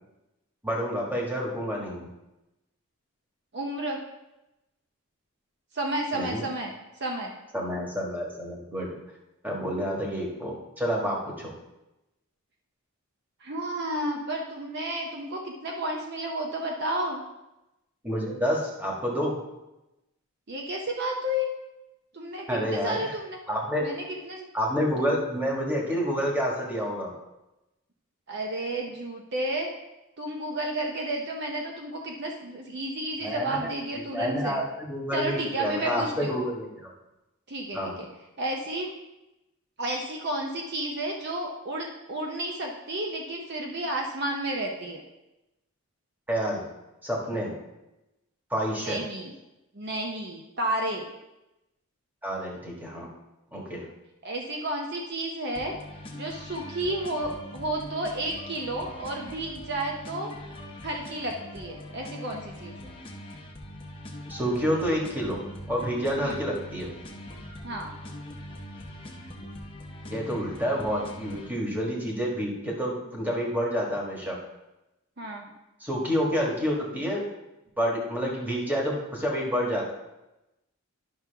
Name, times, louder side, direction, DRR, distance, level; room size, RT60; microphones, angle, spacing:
voice 1, 0.6-2.1 6.1-6.4 7.5-8.9 9.4-11.5 18.0-19.4 22.5-23.0 23.5-23.8 24.5-27.1 33.2-33.6 33.9-36.9 37.7-38.0 46.3-46.6 47.0-47.5 48.5-49.0 52.2-53.1 53.5-53.9 64.3-66.9 70.1-74.4 75.8-77.2 77.8-79.9, equal, 10° right, -2 dB, 1.5 m, -29 dB
voice 2, 3.5-4.0 5.7-6.7 7.0-7.3 13.4-17.2 20.5-21.5 22.1-23.4 23.8-24.5 25.0-25.2 28.3-29.7 30.2-34.6 35.1-36.3 37.5-38.1 38.4-38.9 39.8-45.0 48.8-49.3 49.7-51.1 54.2-55.7 56.1-60.3 60.8-62.9 66.1-66.4 67.6-67.9 75.2-75.5, right 1 dB, 50° right, 1 dB, 0.8 m, -32 dB
sound 1, 55.5-71.5, left 1 dB, 25° left, 0.8 m, -42 dB
11.0 x 5.9 x 3.4 m, 0.96 s
head